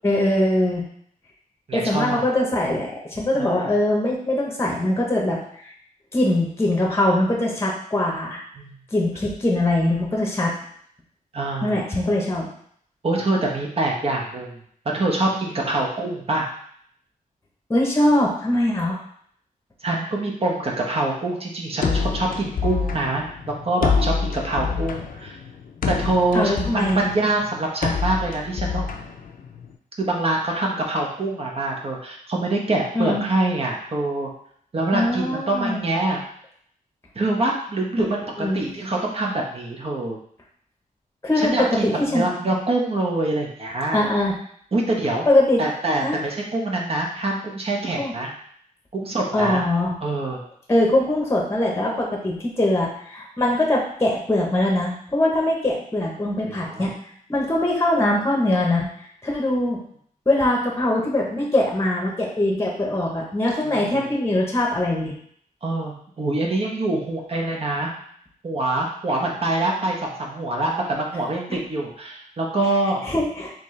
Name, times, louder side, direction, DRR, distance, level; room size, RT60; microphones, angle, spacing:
voice 1, 0.0-0.8 1.7-5.7 6.1-8.4 8.9-10.5 11.6-12.5 17.7-19.0 26.3-27.0 32.9-33.2 34.9-35.8 38.0-38.1 38.4-38.6 41.2-42.2 43.9-44.4 45.2-45.6 46.0-46.2 48.0-48.1 49.3-49.9 50.7-56.9 57.3-58.9 59.2-59.8 60.3-65.2 73.0-73.5, left 1 dB, 20° left, -1 dB, 0.9 m, -22 dB
voice 2, 1.7-2.2 3.3-3.7 8.6-8.8 11.3-11.8 13.0-14.6 14.8-16.5 19.8-23.3 23.6-25.4 25.9-28.9 30.0-34.3 34.7-36.2 37.1-38.2 38.5-40.2 41.4-44.0 44.7-45.3 45.6-48.3 48.9-49.6 50.0-50.4 56.5-56.9 63.6-64.0 65.6-67.9 68.4-73.0, right 2 dB, 40° right, -1 dB, 1.0 m, -25 dB
sound 1, 21.8-29.7, left 5 dB, 75° left, 0.5 m, -27 dB
4.2 x 3.0 x 3.2 m, 0.63 s
wide cardioid pair, 110°, 15 cm